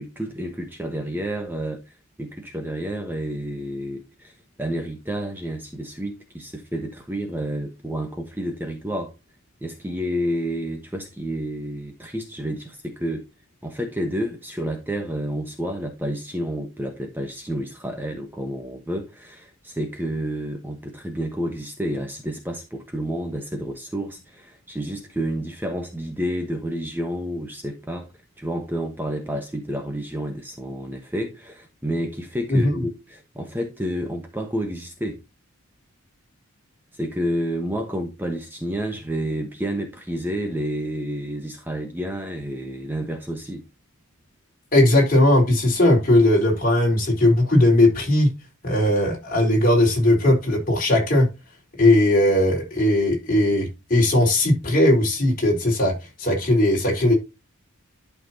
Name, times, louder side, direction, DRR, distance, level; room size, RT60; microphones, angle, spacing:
voice 1, 0.0-1.9 2.2-9.1 9.6-13.2 13.6-28.1 28.4-35.2 36.9-43.6, equal, 10° right, 1.1 m, -30 dB
voice 2, 44.7-48.3 48.6-51.3 51.8-57.1, left 1 dB, 40° left, 4.0 m, -18 dB
12.0 x 5.9 x 2.8 m
head